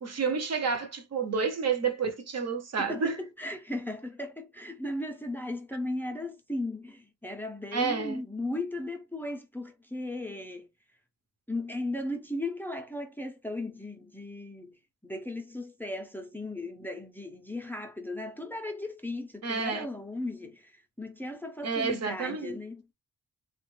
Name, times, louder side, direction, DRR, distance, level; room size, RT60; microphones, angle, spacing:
voice 1, 0.0-3.2 7.7-8.2 19.4-19.9 21.6-22.6, right 5 dB, 45° right, 0.6 m, -30 dB
voice 2, 2.8-10.7 11.5-14.8 15.0-22.8, left 1 dB, 5° left, 0.4 m, -36 dB
3.3 x 2.2 x 3.1 m
wide cardioid pair, 165°, 36 cm